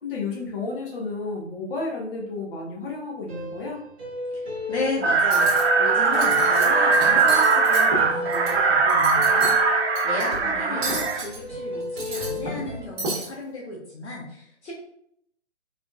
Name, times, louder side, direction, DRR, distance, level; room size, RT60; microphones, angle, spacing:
voice 1, 0.0-3.8 10.5-11.0, left 3 dB, 50° left, -2 dB, 1.3 m, -32 dB
sound 1, 3.3-12.9, left 3 dB, 5° right, 0.4 m, -33 dB
voice 2, 4.3-14.7, left 2 dB, 65° left, -4 dB, 1.2 m, -34 dB
sound 2, 5.0-11.2, right 4 dB, 60° right, 0.9 m, -20 dB
Cutlery silverware, 5.2-5.6 6.0-6.6 6.9-8.5 8.9-9.6 9.9-10.2 10.8-11.4 11.8-12.7 13.0-13.3, right 2 dB, 20° right, 1.0 m, -32 dB
3.9 x 3.3 x 2.5 m, 0.72 s
figure-of-eight pair, 135°, 36 cm